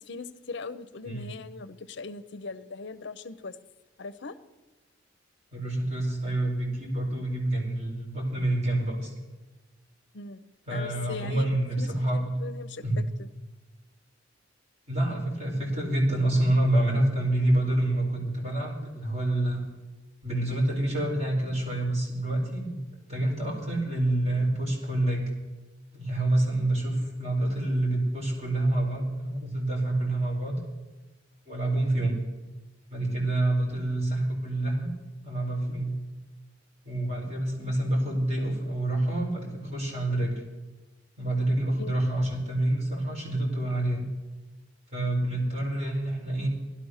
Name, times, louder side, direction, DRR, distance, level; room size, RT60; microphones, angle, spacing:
voice 1, 0.1-3.6 4.0-4.4 10.1-10.4 10.7-13.3 41.8-42.0, left 4 dB, 60° left, 12 dB, 0.7 m, -40 dB
voice 2, 5.5-9.1 10.7-12.2 12.8-13.0 14.9-19.6 20.2-22.8 23.1-25.3 25.9-30.6 31.5-32.2 32.9-34.9 35.2-36.0 36.8-40.4 41.2-44.1 44.9-46.5, right 1 dB, 35° right, -2 dB, 4.5 m, -27 dB
16.5 x 12.0 x 6.5 m, 1.2 s
head